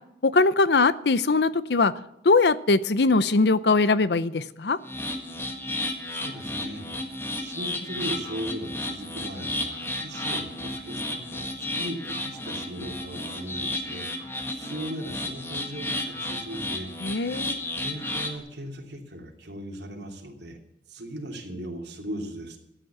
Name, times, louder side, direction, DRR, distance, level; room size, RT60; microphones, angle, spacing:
voice 1, 0.2-1.9 2.2-4.8 17.0-17.6, left 3 dB, 65° left, 15 dB, 0.6 m, -21 dB
sound 1, 4.8-18.4, left 1 dB, 15° left, 1.7 m, -33 dB
voice 2, 6.1-6.9 7.4-20.6 20.9-22.6, right 1 dB, 70° right, 1 dB, 2.8 m, -38 dB
14.0 x 9.1 x 7.2 m, 0.84 s
head